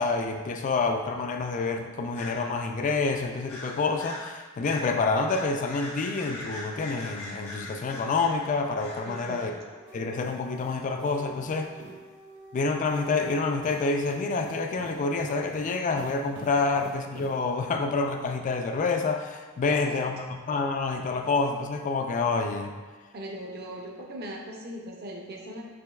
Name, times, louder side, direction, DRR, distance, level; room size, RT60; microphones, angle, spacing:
voice 1, 0.0-9.5 9.9-11.7 12.5-22.7, left 3 dB, 35° left, 5 dB, 0.3 m, -28 dB
sound 1, 2.1-2.4 3.5-4.3 4.6-4.9 5.3-9.5, left 2 dB, 80° left, 1.2 m, -41 dB
voice 2, 9.0-9.5 16.6-16.7 19.6-20.0 23.1-25.7, right 1 dB, 45° right, -1 dB, 0.6 m, -39 dB
Dog, 9.3-14.5, right 2 dB, 60° left, 0.9 m, -50 dB
sound 2, 9.9-12.1 12.8-17.5, right 1 dB, 80° right, 1.3 m, -48 dB
6.1 x 2.9 x 2.3 m, 1.4 s
head